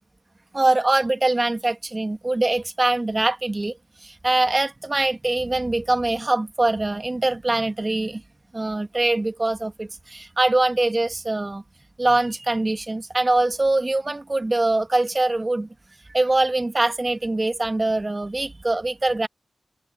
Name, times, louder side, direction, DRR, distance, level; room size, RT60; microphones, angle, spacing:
voice 1, 0.5-8.2 8.5-11.6 12.0-15.7 16.1-19.3, right 2 dB, 35° right, 1.8 m, -23 dB
cardioid pair, 45°, 0 cm